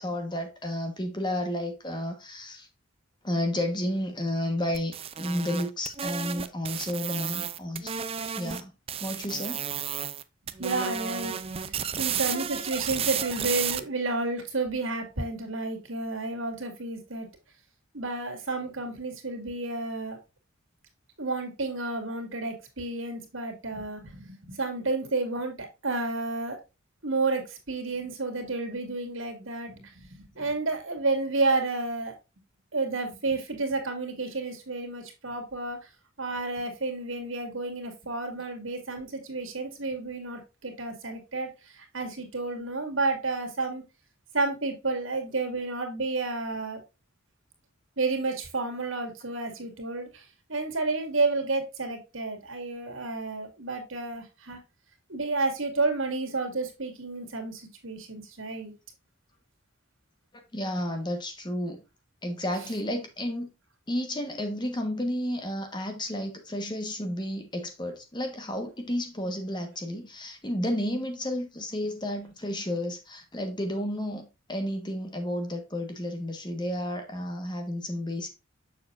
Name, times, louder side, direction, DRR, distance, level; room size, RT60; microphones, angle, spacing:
voice 1, 0.0-2.7 3.2-8.0 8.3-8.7 9.0-9.6 60.5-61.8 62.2-63.5 63.9-78.3, left 1 dB, 20° left, 1.4 m, -32 dB
sound 1, 4.7-8.6 8.9-10.2 10.5-13.8, right 8 dB, 30° right, 0.5 m, -32 dB
voice 2, 10.6-17.3 17.9-20.2 21.2-26.6 27.0-32.1 32.7-35.8 36.2-43.8 44.3-46.8 48.0-50.2 50.5-54.6 55.1-58.7, right 3 dB, 70° right, 2.4 m, -31 dB
7.0 x 6.9 x 2.5 m
head